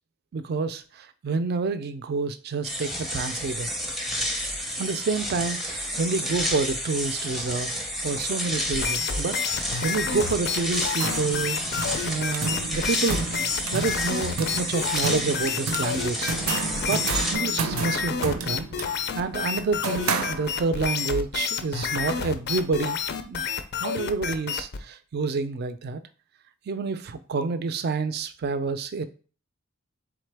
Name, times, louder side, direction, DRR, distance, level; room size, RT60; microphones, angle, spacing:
voice 1, 0.3-3.7 4.8-7.7 8.0-11.6 12.0-16.3 16.8-23.0 23.3-23.4 23.8-26.0 26.7-29.0, right 4 dB, 50° right, 0.4 m, -28 dB
sound 1, 2.6-17.3, equal, ahead, 0.6 m, -30 dB
sound 2, 8.7-24.8, left 6 dB, 50° left, 0.4 m, -30 dB
sound 3, 10.7-20.9, right 4 dB, 90° right, 0.6 m, -32 dB
3.9 x 3.5 x 3.3 m
head